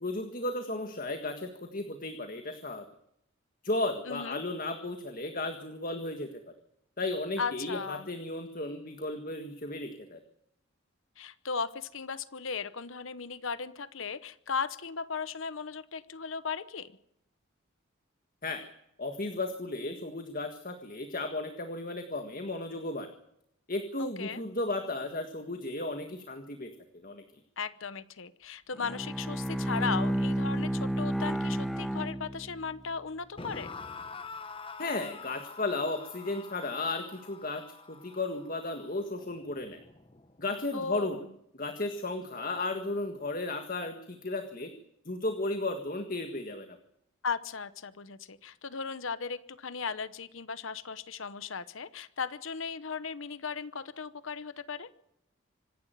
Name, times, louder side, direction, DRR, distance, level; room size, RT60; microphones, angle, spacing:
voice 1, 0.0-2.8 3.6-6.3 7.0-10.2 18.4-18.6 19.0-23.1 23.7-26.7 27.0-27.2 34.8-39.8 40.4-41.2 41.6-44.7 45.0-46.7, left 2 dB, 40° left, 6 dB, 1.7 m, -34 dB
voice 2, 4.1-4.4 7.4-8.1 11.2-16.9 24.0-24.4 27.6-33.7 40.7-41.3 47.2-54.9, left 5 dB, 70° left, 15 dB, 0.9 m, -37 dB
Bowed string instrument, 28.8-32.9, right 1 dB, ahead, 1.0 m, -31 dB
sound 1, 33.4-40.5, left 4 dB, 25° left, 1.1 m, -46 dB
25.5 x 11.5 x 9.1 m, 0.77 s
head